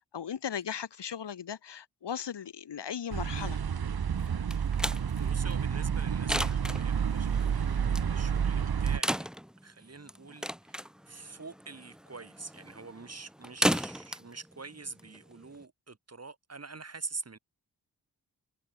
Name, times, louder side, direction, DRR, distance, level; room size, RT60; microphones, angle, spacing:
voice 1, 0.1-3.6, left 8 dB, 75° left, 1.6 m, -37 dB
sound 1, 3.1-9.0, right 7 dB, 60° right, 1.3 m, -30 dB
sound 2, 4.2-15.6, equal, ahead, 2.7 m, -36 dB
voice 2, 5.2-9.3 9.6-17.4, right 4 dB, 35° right, 2.6 m, -45 dB
wide cardioid pair, 90°, 42 cm